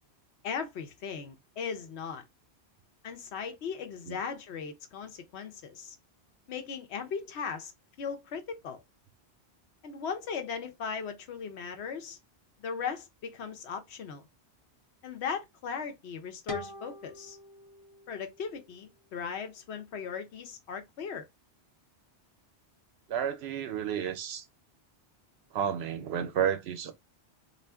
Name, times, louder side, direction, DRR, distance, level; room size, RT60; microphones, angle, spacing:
voice 1, 0.4-2.2 3.0-6.0 6.5-7.7 8.0-8.8 9.8-12.2 12.6-14.3 15.0-17.4 18.1-21.2, left 6 dB, 75° left, 1.0 m, -38 dB
sound 1, 16.5-19.3, left 4 dB, 30° left, 0.6 m, -43 dB
voice 2, 23.1-24.4 25.5-26.9, right 8 dB, 70° right, 0.8 m, -31 dB
2.5 x 2.4 x 3.3 m
omnidirectional pair, 1.1 m